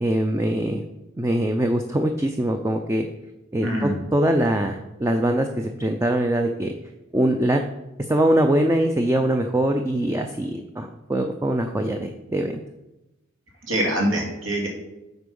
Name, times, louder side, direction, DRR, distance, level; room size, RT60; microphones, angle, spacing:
voice 1, 0.0-0.8 1.2-3.1 3.5-6.7 7.1-7.6 8.1-12.6, right 1 dB, 15° right, 5 dB, 0.5 m, -22 dB
voice 2, 3.6-4.0 13.6-14.7, right 1 dB, 75° right, 0 dB, 2.5 m, -24 dB
8.0 x 5.2 x 5.3 m, 0.97 s
head